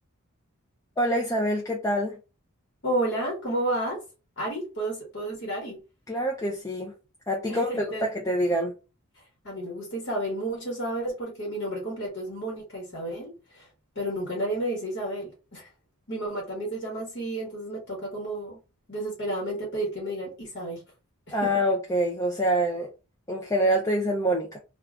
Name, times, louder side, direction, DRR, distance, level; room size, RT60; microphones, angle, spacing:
voice 1, 1.0-2.2 6.1-6.9 7.3-8.7 21.3-22.9 23.3-24.6, equal, 15° left, 0.4 m, -26 dB
voice 2, 2.8-4.0 4.4-5.8 7.5-8.0 9.4-13.7 13.9-15.7 16.1-18.6 18.9-20.8 21.3-21.5, right 1 dB, 50° left, 1.2 m, -31 dB
2.4 x 2.4 x 3.3 m
head